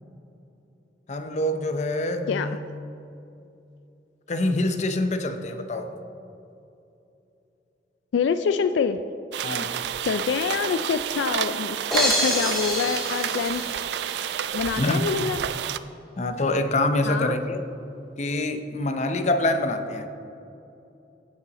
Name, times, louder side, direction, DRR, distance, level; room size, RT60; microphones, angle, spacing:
voice 1, 1.1-2.6 4.3-5.9 9.4-9.7 14.8-15.0 16.2-17.6 18.2-20.1, left 2 dB, 40° left, 0.6 m, -25 dB
voice 2, 8.1-9.0 10.0-13.6 14.5-15.5 17.0-17.4, left 6 dB, 90° left, 0.3 m, -26 dB
sound 1, 9.3-15.8, right 9 dB, 70° right, 0.3 m, -30 dB
sound 2, 11.9-14.2, equal, ahead, 1.9 m, -27 dB
16.0 x 5.6 x 4.0 m
head